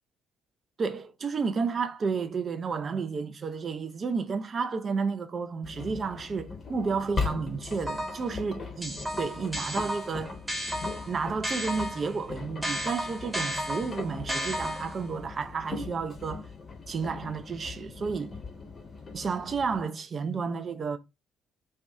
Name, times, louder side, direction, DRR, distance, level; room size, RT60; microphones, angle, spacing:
voice 1, 0.8-10.3 11.1-16.4 16.9-18.4 19.1-21.0, right 5 dB, 40° right, 0.4 m, -31 dB
Engine, 5.6-19.8, left 4 dB, 35° left, 0.7 m, -39 dB
sound 1, 7.6-8.3 8.8-12.2 12.6-15.1, equal, 15° right, 0.7 m, -33 dB
2.6 x 2.2 x 2.3 m
figure-of-eight pair, 45°, 0 cm